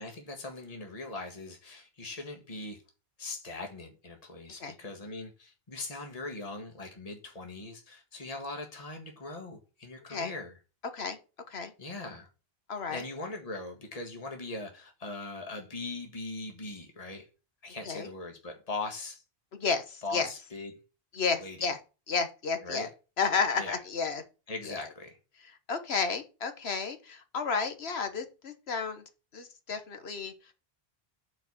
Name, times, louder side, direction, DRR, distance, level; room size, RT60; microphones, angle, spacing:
voice 1, 0.0-2.8 3.2-10.6 11.8-12.3 12.9-17.3 17.6-19.2 20.0-20.7 21.4-21.7 22.6-22.9 23.6-23.8 24.5-25.2, left 3 dB, 35° left, 1.7 m, -40 dB
voice 2, 12.7-13.0 17.8-18.1 19.5-20.3 21.1-21.8 22.1-22.9 23.2-24.2 24.6-24.9 25.4-29.0 29.3-30.5, left 5 dB, 75° left, 1.4 m, -32 dB
7.3 x 4.6 x 7.1 m
omnidirectional pair, 1.1 m